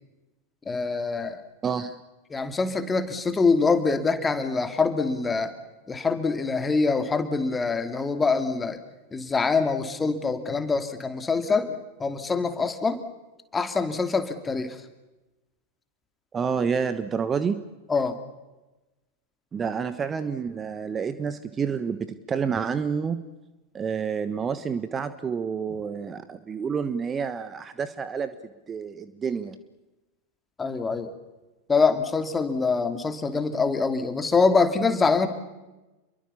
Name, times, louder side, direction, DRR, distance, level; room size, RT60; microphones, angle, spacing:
voice 1, 0.7-1.4 2.3-5.5 5.9-8.8 9.1-13.0 13.5-14.8 17.9-18.2 30.6-31.1 31.7-35.3, left 4 dB, 15° left, 9 dB, 2.7 m, -24 dB
voice 2, 1.6-2.0 16.3-17.6 19.5-23.2 23.7-28.3 28.7-29.6, right 6 dB, 20° right, 13 dB, 1.3 m, -29 dB
29.5 x 23.0 x 7.2 m, 1.1 s
figure-of-eight pair, 90°, 0 cm